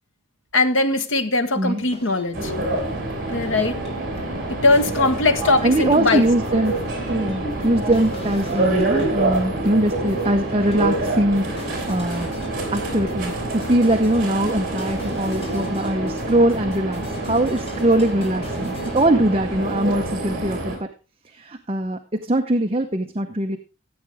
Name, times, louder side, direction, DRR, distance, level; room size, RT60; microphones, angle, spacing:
voice 1, 0.5-2.6 3.3-3.8 4.6-6.2, left 3 dB, 80° left, 1.3 m, -20 dB
voice 2, 1.5-1.9 5.6-6.8 7.1-12.3 12.7-20.9 21.2-23.6, right 1 dB, 30° right, 0.8 m, -22 dB
sound 1, 1.9-19.0, left 1 dB, 30° left, 3.0 m, -43 dB
sound 2, 2.3-20.8, right 2 dB, 45° right, 4.1 m, -27 dB
14.5 x 8.2 x 3.5 m
head